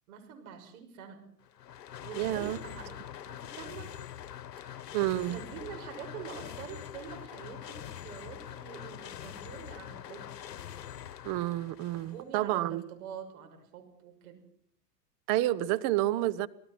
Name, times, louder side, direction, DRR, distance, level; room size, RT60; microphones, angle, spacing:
voice 1, 0.1-1.2 2.0-3.0 3.2-3.9 4.6-5.0 5.3-10.2 11.9-14.4, right 7 dB, 60° right, 6.3 m, -45 dB
sound 1, 1.4-12.3, left 10 dB, 75° left, 1.3 m, -44 dB
voice 2, 2.1-2.6 4.9-5.4 11.2-12.8 15.3-16.5, right 15 dB, 40° right, 1.0 m, -29 dB
26.5 x 17.5 x 6.2 m
hypercardioid pair, 105°, 49 cm